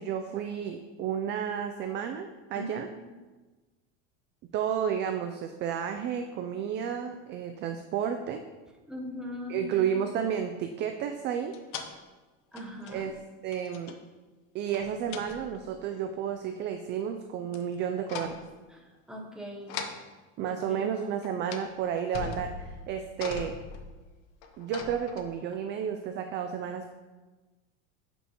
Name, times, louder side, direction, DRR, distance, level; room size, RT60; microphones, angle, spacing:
voice 1, 0.0-2.9 4.5-8.4 9.5-11.5 12.9-13.1 13.4-14.0 14.5-18.4 20.4-23.5 24.6-26.9, right 8 dB, 30° right, 6 dB, 0.4 m, -32 dB
voice 2, 2.5-3.0 8.9-9.7 12.5-13.1 18.7-19.8 20.5-20.9, equal, ahead, 0 dB, 0.9 m, -41 dB
sound 1, 11.5-12.0 12.5-13.2 13.5-14.0 14.7-15.7 17.5-17.7 18.1-18.5 19.7-20.0 20.9-21.0 21.2-21.7 22.0-25.6, left 5 dB, 65° left, 1.0 m, -40 dB
11.0 x 5.3 x 3.0 m, 1.2 s
supercardioid pair, 140°, 35 cm